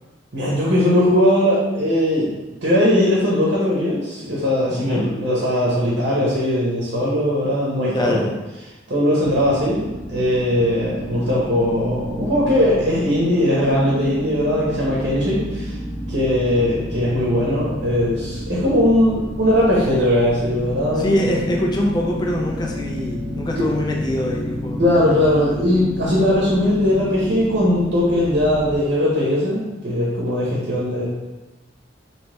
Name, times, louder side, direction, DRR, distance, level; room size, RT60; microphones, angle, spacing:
voice 1, 0.3-2.3 2.6-8.2 8.9-15.8 16.1-21.5 24.8-31.0, left 1 dB, 65° right, -6 dB, 0.9 m, -19 dB
voice 2, 4.7-5.1 7.9-8.3 21.0-24.8, left 1 dB, 20° left, 0 dB, 0.4 m, -23 dB
sound 1, 9.2-28.8, equal, 25° right, 1.3 m, -31 dB
3.2 x 2.9 x 3.0 m, 1.1 s
head